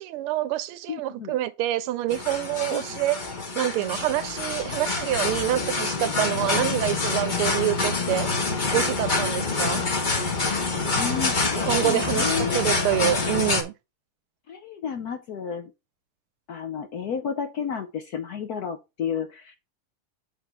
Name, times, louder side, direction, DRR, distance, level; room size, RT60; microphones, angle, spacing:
voice 1, 0.0-3.2 3.5-8.3 8.7-9.8 11.5-13.7, right 14 dB, 80° right, 1.5 m, -27 dB
voice 2, 0.9-1.3 2.7-2.8 10.9-12.6 14.5-15.7 16.5-19.6, left 7 dB, 65° left, 0.9 m, -32 dB
sound 1, 2.1-13.6, left 3 dB, 35° left, 0.9 m, -26 dB
8.1 x 3.7 x 4.6 m
omnidirectional pair, 2.4 m